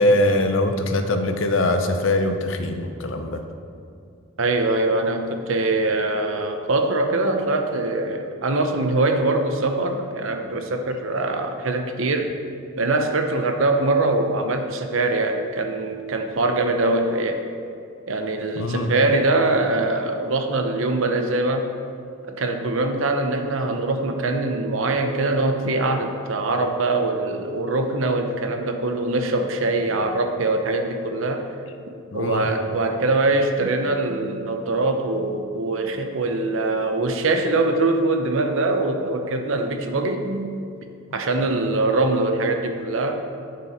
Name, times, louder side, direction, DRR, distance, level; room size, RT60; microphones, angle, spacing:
voice 1, 0.0-3.4 18.5-18.9 32.1-32.5, left 1 dB, 70° left, 7 dB, 0.7 m, -22 dB
voice 2, 4.4-12.3 12.8-17.4 18.1-21.7 22.3-31.4 32.1-40.5 41.1-43.2, right 2 dB, 75° right, 6 dB, 0.8 m, -23 dB
8.6 x 7.2 x 4.4 m, 2.5 s
head